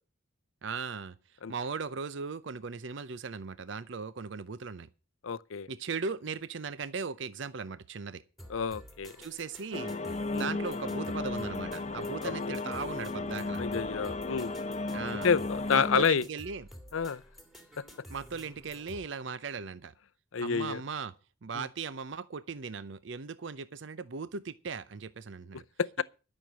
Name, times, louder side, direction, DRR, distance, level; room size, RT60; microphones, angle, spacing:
voice 1, 0.6-4.9 5.7-8.2 9.2-9.9 10.3-13.6 14.9-15.3 15.7-16.7 18.1-19.9 20.4-21.1 21.4-25.6, right 5 dB, 65° right, 0.6 m, -38 dB
voice 2, 5.2-5.7 8.5-9.1 10.3-10.5 12.2-12.6 13.6-14.5 15.2-16.2 16.9-17.2 20.3-20.8 21.5-21.7 25.8-26.0, left 6 dB, 85° left, 0.6 m, -29 dB
sound 1, 8.4-19.1, equal, ahead, 2.7 m, -51 dB
sound 2, 9.7-16.1, left 2 dB, 35° left, 0.7 m, -35 dB
12.5 x 6.5 x 8.5 m
head